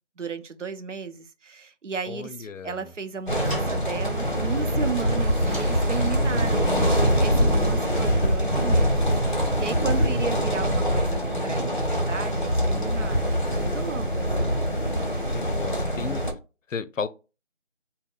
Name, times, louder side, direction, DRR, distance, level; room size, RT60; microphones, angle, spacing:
voice 1, 0.2-14.8, right 6 dB, 75° right, 0.6 m, -35 dB
voice 2, 2.1-2.9 10.1-10.6 15.3-16.2 16.7-17.1, left 5 dB, 85° left, 0.5 m, -34 dB
sound 1, 2.6-7.5, right 1 dB, 40° right, 1.6 m, -41 dB
sound 2, 3.3-16.3, equal, 40° left, 0.7 m, -24 dB
3.6 x 2.1 x 2.3 m
figure-of-eight pair, 175°, 37 cm